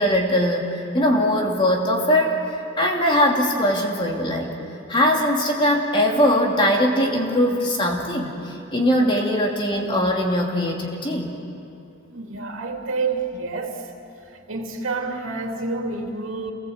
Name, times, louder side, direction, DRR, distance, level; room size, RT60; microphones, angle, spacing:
voice 1, 0.0-2.4 2.8-4.6 4.9-11.4, equal, 25° left, 0 dB, 2.7 m, -21 dB
voice 2, 12.1-13.8 14.3-16.5, right 3 dB, 90° right, 2 dB, 2.9 m, -28 dB
28.0 x 19.5 x 8.0 m, 2.7 s
head